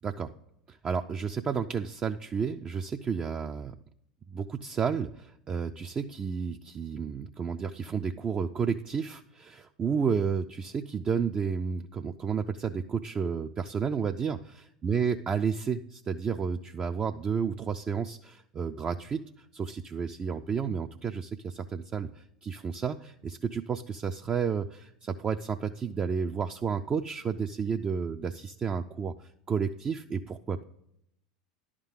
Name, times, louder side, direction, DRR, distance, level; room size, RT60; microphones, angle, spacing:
voice 1, 0.7-3.7 4.3-30.6, right 6 dB, 25° right, 5 dB, 0.4 m, -31 dB
11.0 x 3.7 x 7.3 m, 0.76 s
hypercardioid pair, 85°, 4 cm